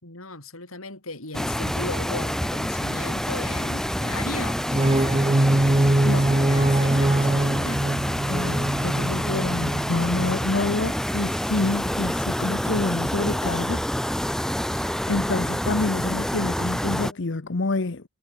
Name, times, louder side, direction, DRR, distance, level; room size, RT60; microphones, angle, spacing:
voice 1, 0.0-7.8 8.8-9.1, left 2 dB, 80° left, 7.1 m, -37 dB
sound 1, 1.3-17.1, equal, ahead, 0.7 m, -27 dB
sound 2, 4.6-10.5, right 1 dB, 25° right, 0.8 m, -23 dB
voice 2, 8.3-13.8 14.7-18.0, left 3 dB, 60° left, 0.9 m, -27 dB
head